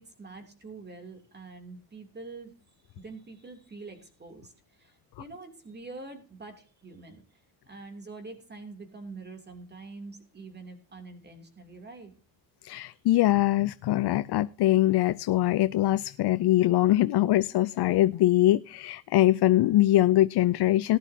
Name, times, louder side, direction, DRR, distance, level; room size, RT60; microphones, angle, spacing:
voice 1, 0.0-2.5 3.0-7.2 7.7-12.1, right 3 dB, 25° right, 5 dB, 3.0 m, -45 dB
voice 2, 12.6-21.0, left 15 dB, 80° left, 14 dB, 0.6 m, -23 dB
18.5 x 11.0 x 2.8 m, 0.37 s
wide cardioid pair, 170°, 39 cm